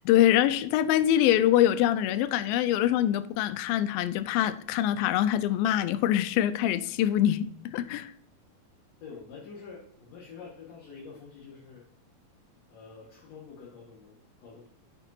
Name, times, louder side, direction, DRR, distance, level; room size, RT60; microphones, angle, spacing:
voice 1, 0.1-8.1, left 12 dB, 90° left, 2.4 m, -24 dB
voice 2, 9.0-11.8 12.7-14.7, left 5 dB, 55° left, 2.3 m, -47 dB
8.9 x 7.3 x 2.7 m
omnidirectional pair, 4.1 m